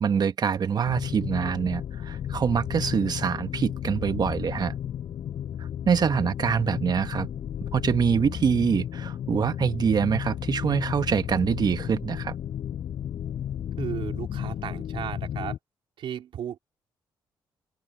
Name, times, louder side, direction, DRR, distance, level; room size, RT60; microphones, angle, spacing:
voice 1, 0.0-4.7 5.9-7.3 7.7-12.3, right 7 dB, 50° right, 1.3 m, -25 dB
sound 1, 0.8-15.6, left 10 dB, 70° left, 6.8 m, -33 dB
voice 2, 13.8-15.6 16.0-16.6, right 10 dB, 70° right, 3.6 m, -35 dB
open air
cardioid pair, 80°, 9 cm